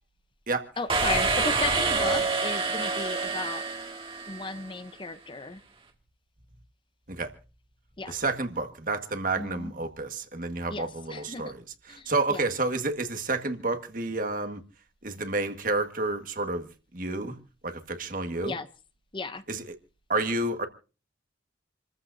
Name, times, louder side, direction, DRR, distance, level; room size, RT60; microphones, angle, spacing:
voice 1, 0.8-3.6 4.3-5.6 8.0-8.1 9.3-9.7 10.7-11.5 11.9-12.4 18.4-18.7 19.1-19.4, left 3 dB, 25° left, 0.7 m, -35 dB
sound 1, 0.9-4.7, right 3 dB, 30° right, 2.0 m, -27 dB
voice 2, 8.1-14.6 15.0-16.7 16.9-17.4 17.6-18.5 19.5-19.6 20.1-20.7, right 2 dB, 45° right, 1.6 m, -30 dB
28.0 x 14.5 x 2.7 m
head